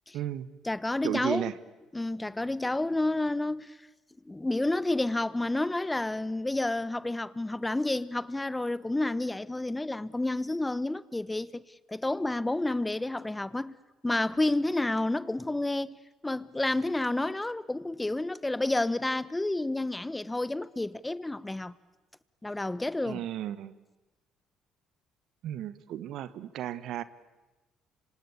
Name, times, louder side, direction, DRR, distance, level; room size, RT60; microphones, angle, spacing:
voice 1, 0.1-0.5 1.0-1.5 23.0-23.8 25.4-27.0, right 11 dB, 70° right, 1.4 m, -34 dB
voice 2, 0.6-1.5 1.9-3.8 4.3-11.6 11.9-13.8 14.0-16.0 16.2-21.7 22.4-23.2, left 2 dB, 15° left, 1.1 m, -30 dB
26.5 x 25.5 x 8.5 m
supercardioid pair, 65°, 0 cm